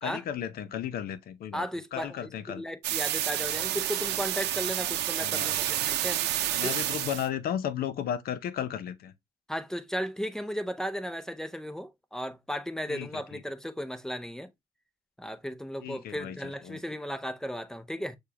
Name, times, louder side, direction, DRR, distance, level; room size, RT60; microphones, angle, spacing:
voice 1, 0.0-1.6 1.9-2.6 5.1-5.6 6.5-9.1 12.9-13.4 15.8-16.4 16.6-16.8, left 9 dB, 60° left, 0.7 m, -34 dB
voice 2, 1.5-6.2 6.6-6.7 9.5-14.5 15.2-18.2, equal, 5° left, 0.6 m, -35 dB
sound 1, 2.8-7.3, right 13 dB, 85° right, 0.7 m, -29 dB
6.6 x 2.3 x 2.9 m
cardioid pair, 110°, 17 cm